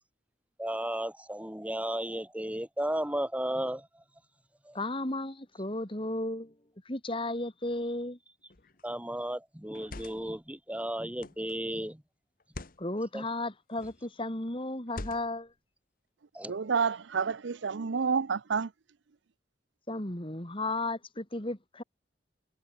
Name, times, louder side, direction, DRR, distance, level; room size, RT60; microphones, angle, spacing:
voice 1, 0.6-4.0 4.7-4.8 8.8-12.0 13.1-13.2 16.3-16.5, right 1 dB, 10° right, 2.2 m, -34 dB
voice 2, 4.7-6.5 6.8-8.2 12.8-15.5 19.9-21.8, left 2 dB, 30° left, 3.2 m, -34 dB
sound 1, 8.5-8.8 9.6-10.4 11.2-11.5 12.4-12.8 13.7-14.1 14.9-15.5, left 2 dB, 50° left, 1.5 m, -44 dB
voice 3, 16.5-18.7, right 5 dB, 80° right, 0.6 m, -29 dB
head